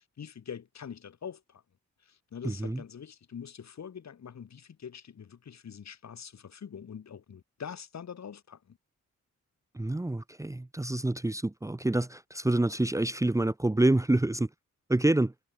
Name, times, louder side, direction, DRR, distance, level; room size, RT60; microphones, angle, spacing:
voice 1, 0.0-1.6 2.1-8.8, left 7 dB, 60° left, 3.7 m, -44 dB
voice 2, 2.4-2.8 9.7-14.5 14.9-15.3, right 1 dB, 10° right, 1.1 m, -27 dB
wide cardioid pair, 120°, 31 cm